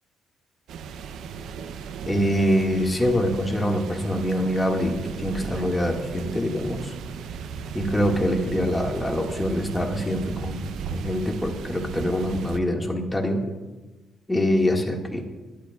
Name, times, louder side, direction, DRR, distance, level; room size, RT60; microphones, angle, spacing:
sound 1, 0.7-12.6, right 6 dB, 80° right, 0.8 m, -36 dB
voice 1, 2.0-6.9 7.7-13.5 14.3-15.2, equal, 15° left, 1 dB, 2.1 m, -24 dB
20.0 x 12.0 x 2.5 m, 1.2 s
cardioid pair, 90°, 0 cm